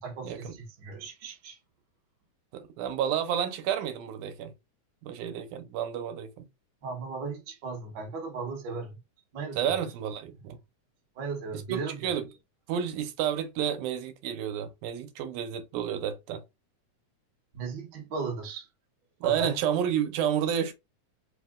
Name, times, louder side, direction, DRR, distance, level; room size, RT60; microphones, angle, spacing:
voice 1, 0.0-1.6 6.8-9.0 9.3-9.8 11.1-12.1 17.5-18.7 19.2-19.6, right 4 dB, 50° right, 1.4 m, -36 dB
voice 2, 2.5-4.5 5.0-6.5 9.5-10.6 11.5-12.3 12.7-16.4 19.2-20.7, right 9 dB, 85° right, 2.1 m, -30 dB
4.8 x 2.1 x 3.6 m
omnidirectional pair, 3.4 m